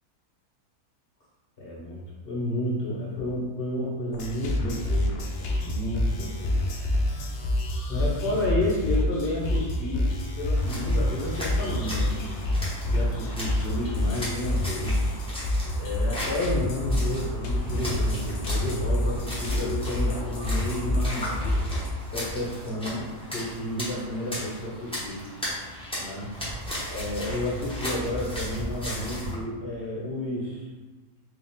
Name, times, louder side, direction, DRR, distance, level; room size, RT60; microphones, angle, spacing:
voice 1, 1.6-2.0 2.2-6.8 7.9-12.3 12.8-15.0 15.8-21.4 22.1-23.0 23.3-25.2 26.0-26.3 26.9-30.7, left 1 dB, 40° left, -6 dB, 1.3 m, -31 dB
sound 1, 4.1-21.9, left 1 dB, 65° left, 0.7 m, -27 dB
sound 2, 10.5-29.4, equal, 5° left, 0.6 m, -36 dB
3.6 x 2.5 x 3.6 m, 1.2 s
omnidirectional pair, 1.6 m